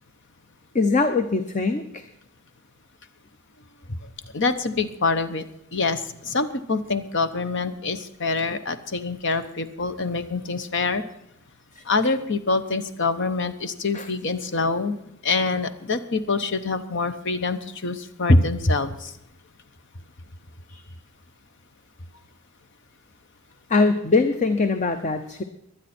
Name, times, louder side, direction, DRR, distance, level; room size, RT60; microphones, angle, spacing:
voice 1, 0.7-2.1 11.7-11.8 13.9-14.1 18.3-18.4 20.7-20.8 23.7-25.4, left 3 dB, 35° left, 9 dB, 0.8 m, -21 dB
voice 2, 4.3-5.4 5.7-11.0 11.9-19.1, left 4 dB, 60° left, 11 dB, 1.1 m, -26 dB
24.0 x 9.1 x 4.4 m, 0.81 s
head